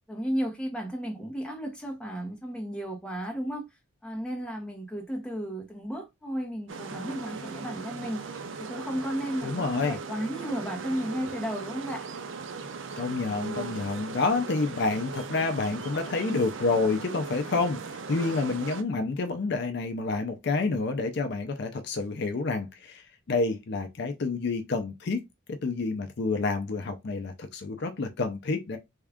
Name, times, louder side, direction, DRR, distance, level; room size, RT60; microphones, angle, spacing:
voice 1, 0.1-3.7 4.0-8.2 8.6-12.0, equal, 5° left, 0.8 m, -33 dB
sound 1, 6.7-18.8, right 5 dB, 65° right, 0.5 m, -38 dB
voice 2, 9.4-10.0 13.0-25.2 25.6-28.8, left 3 dB, 55° left, 0.5 m, -29 dB
3.5 x 2.3 x 3.4 m
head